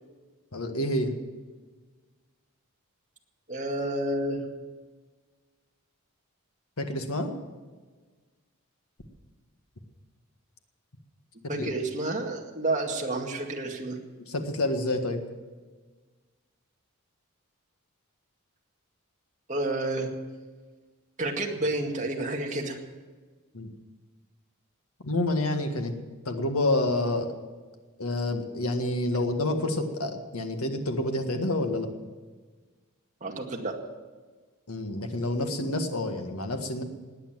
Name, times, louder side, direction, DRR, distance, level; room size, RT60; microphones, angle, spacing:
voice 1, 0.5-1.2 6.8-7.3 11.4-11.7 14.3-15.2 23.5-23.7 25.0-25.9 26.3-27.3 28.0-31.9 34.7-36.8, left 1 dB, 85° left, 5 dB, 1.8 m, -28 dB
voice 2, 3.5-4.4 11.5-14.0 19.5-20.1 21.2-22.8 33.2-33.8, right 2 dB, 35° right, 1 dB, 2.0 m, -30 dB
19.5 x 8.8 x 7.5 m, 1.4 s
head